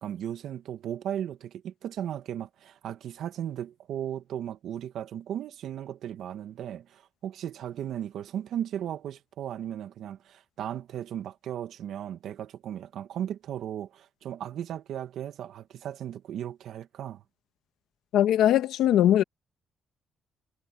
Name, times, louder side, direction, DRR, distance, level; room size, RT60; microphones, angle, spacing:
voice 1, 0.0-17.2, right 10 dB, 75° right, 2.0 m, -36 dB
voice 2, 18.1-19.2, left 11 dB, 85° left, 1.6 m, -20 dB
cardioid pair, 90°, 0 cm